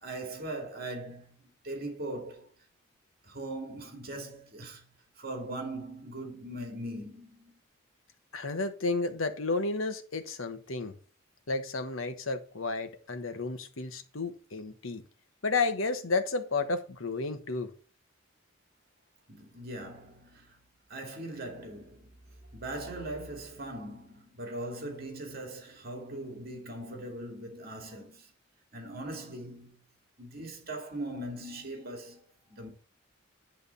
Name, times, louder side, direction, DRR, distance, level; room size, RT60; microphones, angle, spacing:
voice 1, 0.0-2.5 3.2-4.9 5.2-7.6 19.3-20.6 20.9-22.1 22.5-28.3 28.7-29.8 30.2-32.7, right 1 dB, 50° right, 2.4 m, -40 dB
voice 2, 8.3-10.9 11.5-15.0 15.4-17.7, left 3 dB, 85° left, 1.2 m, -32 dB
10.5 x 3.6 x 6.9 m
head